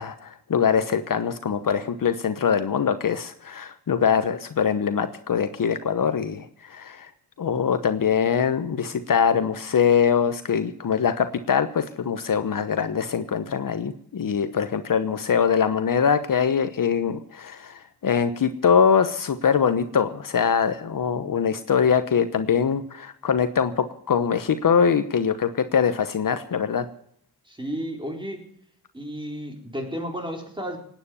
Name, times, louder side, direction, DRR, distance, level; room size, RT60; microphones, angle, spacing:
voice 1, 0.0-7.1 7.4-26.9, left 7 dB, 55° left, 10 dB, 1.1 m, -23 dB
voice 2, 27.4-28.5 28.9-30.8, equal, 10° right, 2 dB, 4.2 m, -32 dB
18.5 x 9.4 x 7.0 m, 0.66 s
cardioid pair, 100°, 40 cm